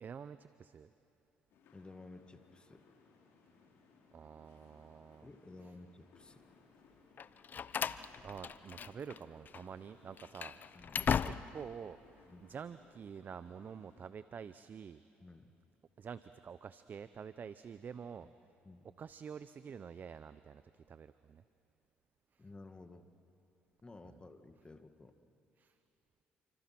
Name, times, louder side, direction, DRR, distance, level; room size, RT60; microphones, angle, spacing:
voice 1, 0.0-0.9 4.1-5.3 5.6-5.7 8.2-10.6 11.2-15.0 16.0-18.3 19.0-21.4 22.3-22.5 24.0-24.2 25.6-25.8, right 7 dB, 45° right, 13 dB, 0.7 m, -48 dB
sound 1, 1.5-14.1, left 4 dB, 70° left, 4.7 m, -66 dB
voice 2, 1.7-2.8 5.2-6.4 10.7-11.3 12.3-12.4 15.2-15.5 18.2-18.3 18.6-18.8 22.4-23.1 23.8-25.1, left 2 dB, 20° left, 8 dB, 1.9 m, -54 dB
Slam, 7.2-9.2 9.5-9.6 10.1-11.7, left 7 dB, 45° left, 0.7 m, -37 dB
29.0 x 25.5 x 6.0 m, 2.9 s
supercardioid pair, 70°, 4 cm